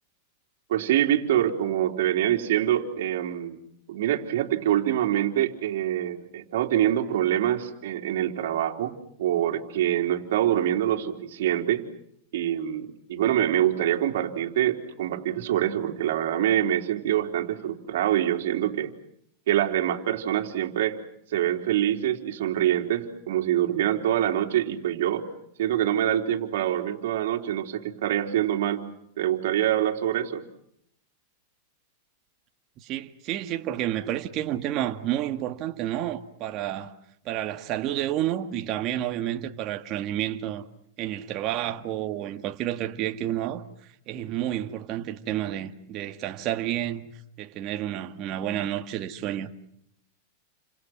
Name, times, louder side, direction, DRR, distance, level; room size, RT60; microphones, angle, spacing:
voice 1, 0.7-3.6 3.9-11.8 12.3-18.9 19.5-21.0 21.3-25.3 25.6-28.9 29.2-30.4, right 11 dB, 70° right, 3.5 m, -25 dB
voice 2, 32.8-36.9 37.3-40.6 41.0-43.6 44.1-47.1 47.4-49.5, right 12 dB, 35° right, 1.7 m, -30 dB
30.0 x 27.0 x 6.1 m
supercardioid pair, 160°, 0 cm